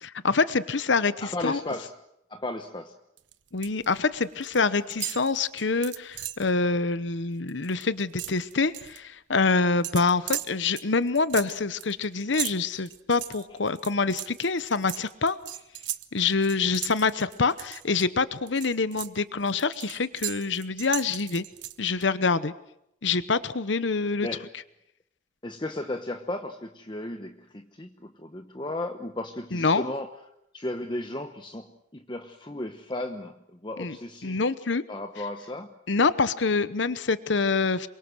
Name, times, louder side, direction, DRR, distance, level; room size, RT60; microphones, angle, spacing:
voice 1, 0.0-1.6 3.5-15.4 16.1-21.4 21.8-22.5 23.0-24.3 29.5-29.8 33.8-34.0 34.2-34.8 35.9-37.9, left 4 dB, 75° left, 14 dB, 0.9 m, -26 dB
voice 2, 1.2-2.0 2.3-3.0 24.2-24.5 25.4-30.1 30.5-34.4 34.9-35.7, left 1 dB, 25° left, 6 dB, 1.0 m, -35 dB
sound 1, 3.2-3.8 4.1-4.6 4.9-6.5 6.9-7.1 7.4-9.0 9.8-18.0 18.5-22.0, right 13 dB, 75° right, 1.1 m, -37 dB
27.5 x 23.5 x 6.3 m, 0.80 s
head